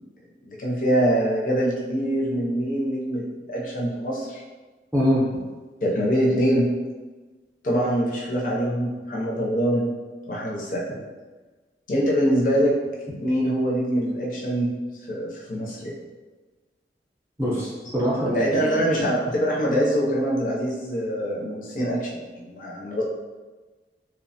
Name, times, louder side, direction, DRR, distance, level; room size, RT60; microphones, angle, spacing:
voice 1, 0.4-4.4 5.8-6.7 7.6-9.9 10.3-10.8 11.9-12.7 13.2-14.7 15.1-15.9 18.3-23.0, equal, 45° left, -4 dB, 0.5 m, -24 dB
voice 2, 4.9-5.4 10.9-11.0 17.4-18.5, equal, 15° right, -7 dB, 0.6 m, -23 dB
2.9 x 2.0 x 2.7 m, 1.3 s
head